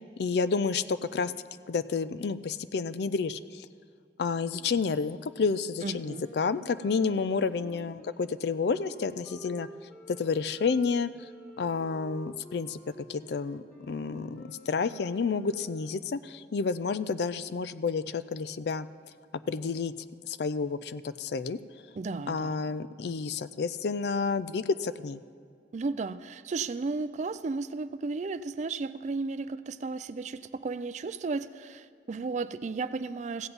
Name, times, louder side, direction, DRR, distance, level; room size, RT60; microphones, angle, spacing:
voice 1, 0.2-1.3 1.7-3.7 4.2-9.7 10.1-11.1 11.6-12.8 13.1-18.9 19.5-19.9 20.3-21.6 22.3-25.2, left 5 dB, 65° left, 15 dB, 0.4 m, -30 dB
voice 2, 5.8-6.2 21.9-22.6 25.7-33.5, right 4 dB, 40° right, 13 dB, 0.4 m, -34 dB
Wind instrument woodwind instrument, 6.0-16.1, equal, 10° left, 1.2 m, -50 dB
15.5 x 7.9 x 5.4 m, 2.3 s
head